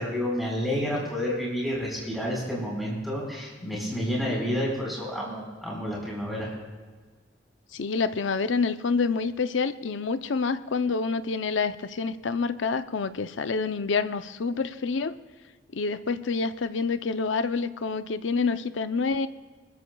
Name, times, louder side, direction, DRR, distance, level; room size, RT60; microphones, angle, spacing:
voice 1, 0.0-6.5, equal, ahead, -4 dB, 4.5 m, -30 dB
voice 2, 3.6-3.9 7.7-15.2 15.7-19.3, left 4 dB, 80° left, 11 dB, 0.6 m, -27 dB
25.5 x 13.5 x 2.3 m, 1.4 s
head